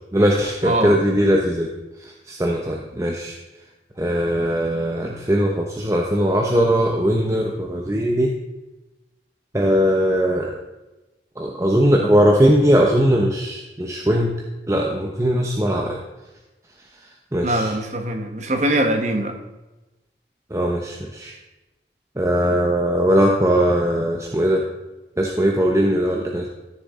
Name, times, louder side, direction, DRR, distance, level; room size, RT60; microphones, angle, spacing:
voice 1, 0.1-1.7 2.0-3.4 4.0-8.3 9.5-10.5 11.4-14.3 14.7-16.0 17.3-17.7 20.5-21.3 22.2-24.6 25.2-26.5, equal, 15° right, 0 dB, 0.7 m, -19 dB
voice 2, 0.6-1.0 17.4-19.4, right 1 dB, 40° right, 4 dB, 1.2 m, -22 dB
13.5 x 6.7 x 3.7 m, 1.1 s
head